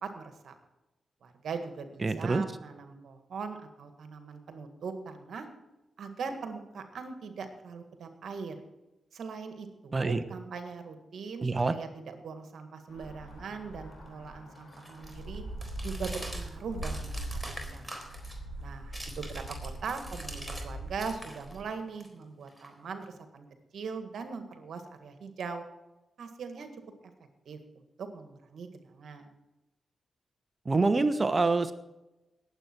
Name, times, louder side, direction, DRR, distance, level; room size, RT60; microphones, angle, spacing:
voice 1, 0.0-0.6 1.2-5.5 6.0-8.6 9.1-15.4 15.8-17.9 18.6-23.5 23.7-25.6 26.2-26.7 27.5-27.6 28.0-29.3, right 5 dB, 75° right, 7 dB, 1.8 m, -40 dB
voice 2, 2.0-2.4 9.9-10.2 11.4-11.7 30.6-31.7, right 3 dB, 40° right, 11 dB, 1.1 m, -26 dB
sound 1, 12.9-21.7, right 1 dB, 75° left, 4.6 m, -41 dB
sound 2, 13.3-20.7 21.0-23.2, right 1 dB, 5° right, 3.9 m, -46 dB
19.0 x 8.2 x 4.6 m, 1.0 s
supercardioid pair, 45°, 0 cm